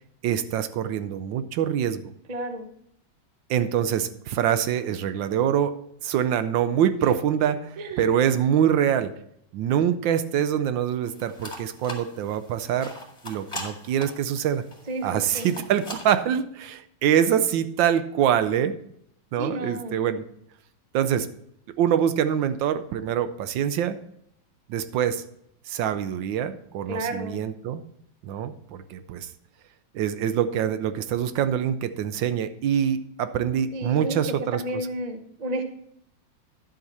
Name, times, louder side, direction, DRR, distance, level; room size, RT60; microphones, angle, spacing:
voice 1, 0.2-2.0 3.5-5.7 6.0-9.1 9.5-12.9 13.2-14.6 15.0-18.7 19.3-20.2 20.9-21.3 21.8-24.0 24.7-25.2 25.7-27.8 28.2-29.3 29.9-34.9, right 9 dB, 75° right, 11 dB, 1.3 m, -25 dB
voice 2, 2.3-2.7 7.8-8.1 14.9-15.6 19.4-20.0 26.9-27.4 33.7-34.2 34.5-35.6, right 1 dB, 40° right, 7 dB, 0.5 m, -32 dB
sound 1, 11.0-16.2, left 1 dB, 15° left, 1.9 m, -41 dB
10.5 x 7.7 x 4.1 m, 0.71 s
omnidirectional pair, 2.2 m